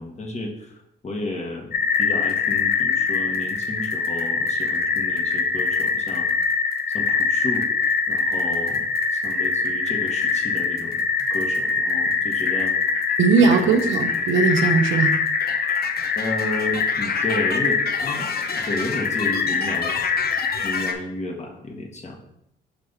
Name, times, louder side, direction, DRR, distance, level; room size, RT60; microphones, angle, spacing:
voice 1, 0.0-1.7 2.0-6.3 6.9-7.7 8.1-8.8 9.1-12.7 13.4-13.8 16.1-18.3 18.6-19.9 20.6-22.2, left 2 dB, 35° left, 2 dB, 1.4 m, -32 dB
sound 1, 1.7-20.9, left 5 dB, 50° left, 0.8 m, -23 dB
voice 2, 13.2-15.1, right 5 dB, 80° right, 6 dB, 0.8 m, -18 dB
5.9 x 3.3 x 5.6 m, 0.81 s
cardioid pair, 90°, 20 cm